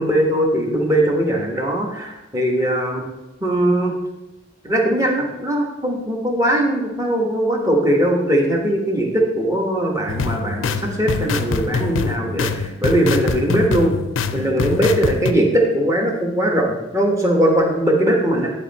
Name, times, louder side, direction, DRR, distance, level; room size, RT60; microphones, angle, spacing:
voice 1, 0.0-3.0 3.4-3.9 4.6-13.9 14.3-18.5, right 1 dB, 15° right, 0 dB, 1.3 m, -20 dB
sound 1, 10.1-15.3, left 4 dB, 85° left, 0.5 m, -24 dB
9.8 x 4.3 x 4.1 m, 1.0 s
head